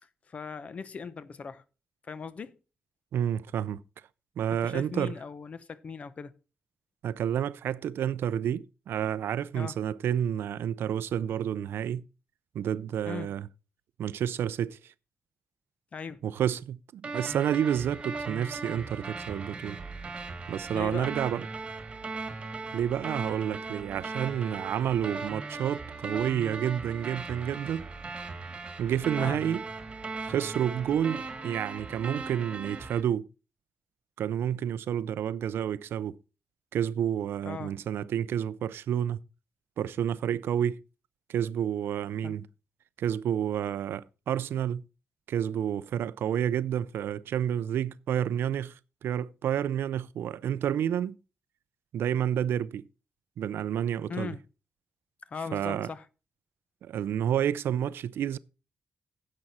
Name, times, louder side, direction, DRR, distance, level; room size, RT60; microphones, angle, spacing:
voice 1, 0.3-1.6 2.1-2.6 4.6-6.3 9.5-9.7 13.1-13.3 15.9-16.2 20.7-21.1 29.2-29.4 37.4-37.7 42.2-42.3 54.1-54.4 55.3-56.0, left 5 dB, 35° left, 0.7 m, -38 dB
voice 2, 3.1-3.8 4.4-5.2 7.0-12.0 12.5-13.5 14.0-14.9 16.2-19.8 20.5-21.5 22.7-27.9 28.8-29.6 30.2-33.3 34.2-36.2 36.7-39.2 39.8-40.8 41.3-42.5 43.0-44.8 45.3-51.2 51.9-52.9 53.4-54.3 55.5-55.9 56.8-58.4, right 9 dB, 80° right, 0.5 m, -30 dB
sound 1, 17.0-33.0, right 3 dB, 30° right, 1.6 m, -38 dB
10.5 x 7.6 x 4.2 m
wide cardioid pair, 175°, 4 cm